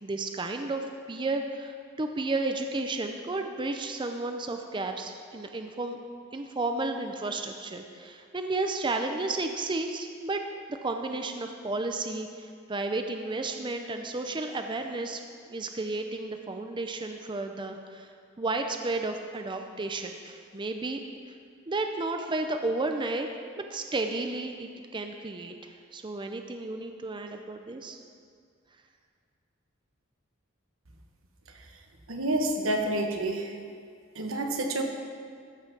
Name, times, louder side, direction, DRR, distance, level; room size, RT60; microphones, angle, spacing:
voice 1, 0.0-6.0 6.3-10.4 10.8-15.2 15.5-18.1 18.4-21.0 21.7-23.3 23.6-28.0, right 2 dB, 25° right, 5 dB, 0.5 m, -32 dB
voice 2, 32.1-33.5 34.1-34.8, right 1 dB, 85° right, 3 dB, 1.2 m, -28 dB
14.0 x 5.5 x 6.1 m, 2.2 s
head